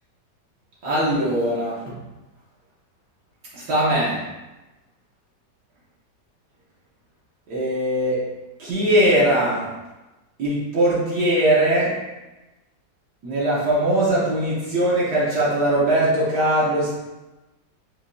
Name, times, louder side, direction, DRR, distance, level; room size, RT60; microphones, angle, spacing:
voice 1, 0.8-1.9 3.5-4.2 7.5-8.2 8.6-9.6 10.4-11.9 13.2-16.9, right 1 dB, 70° right, -8 dB, 1.6 m, -20 dB
5.0 x 3.2 x 2.6 m, 1.1 s
omnidirectional pair, 1.9 m